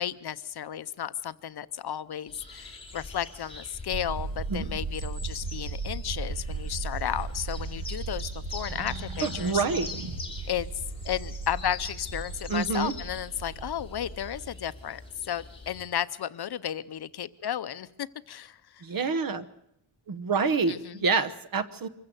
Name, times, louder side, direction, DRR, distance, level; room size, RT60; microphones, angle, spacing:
voice 1, 0.0-9.6 10.5-10.7 11.0-18.8 20.7-21.0, left 10 dB, 55° left, 15 dB, 0.7 m, -33 dB
sound 1, 2.3-15.8, left 3 dB, 10° left, 4.1 m, -44 dB
sound 2, 3.9-14.5, right 3 dB, 80° right, 2.5 m, -36 dB
voice 2, 9.2-9.9 12.5-12.9 18.8-19.4 20.1-21.9, right 4 dB, 45° right, 13 dB, 1.1 m, -27 dB
25.0 x 15.5 x 7.8 m, 0.80 s
wide cardioid pair, 150°, 47 cm